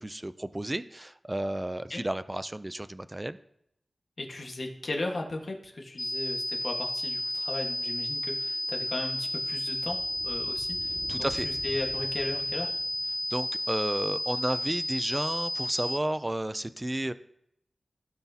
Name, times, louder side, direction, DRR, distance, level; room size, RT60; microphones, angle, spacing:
voice 1, 0.0-3.4 11.1-11.5 13.3-17.1, right 1 dB, 20° right, 13 dB, 0.4 m, -32 dB
voice 2, 4.2-10.0 10.2-11.0 11.4-12.8, left 2 dB, 60° left, 1 dB, 1.5 m, -36 dB
sound 1, 6.0-16.0, left 1 dB, 25° left, 0.6 m, -32 dB
sound 2, 8.0-13.6, right 1 dB, 65° right, 2.2 m, -49 dB
16.5 x 5.9 x 2.8 m, 0.76 s
wide cardioid pair, 100°, 0 cm